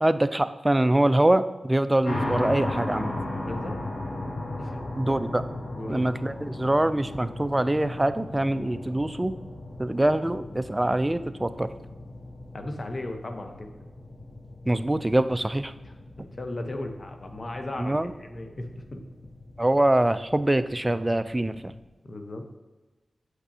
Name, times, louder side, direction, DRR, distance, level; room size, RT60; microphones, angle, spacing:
voice 1, 0.0-3.1 5.0-5.4 5.9-9.3 9.8-11.7 14.7-15.7 17.8-18.1 19.6-21.7, right 1 dB, 20° right, 12 dB, 0.4 m, -24 dB
sound 1, 2.0-21.8, left 1 dB, 85° left, 1.4 m, -37 dB
voice 2, 3.4-3.8 4.6-4.8 5.8-6.1 12.5-13.7 15.8-19.0 22.0-22.5, left 1 dB, 50° left, 5 dB, 0.9 m, -36 dB
7.6 x 5.9 x 2.8 m, 1.2 s
cardioid pair, 55°, 0 cm